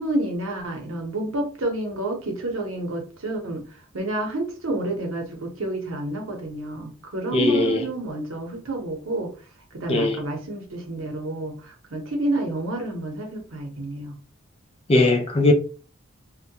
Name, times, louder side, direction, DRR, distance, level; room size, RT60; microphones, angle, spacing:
voice 1, 0.0-3.6 3.9-9.3 9.7-14.1, right 2 dB, 75° right, 0.8 m, -29 dB
voice 2, 7.3-7.9 9.9-10.2 14.9-15.5, left 2 dB, 30° left, 0.4 m, -19 dB
2.2 x 2.1 x 2.7 m
head